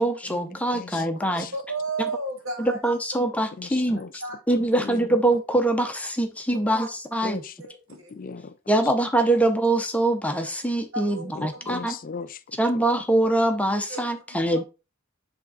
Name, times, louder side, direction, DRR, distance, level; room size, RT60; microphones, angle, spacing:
voice 1, 0.0-1.5 2.6-4.0 4.5-7.4 8.7-11.9 12.6-14.6, right 1 dB, 5° left, 0.7 m, -23 dB
voice 2, 0.7-1.5 3.6-4.2 4.8-5.2 7.2-7.6 8.1-8.6 11.4-12.4 12.7-12.8, left 5 dB, 40° left, 0.4 m, -37 dB
voice 3, 1.5-3.2 4.2-4.4 6.7-6.9 7.6-8.2 10.9-11.7 13.9-14.0 14.5-14.6, right 3 dB, 65° right, 1.8 m, -34 dB
7.5 x 3.5 x 4.1 m
head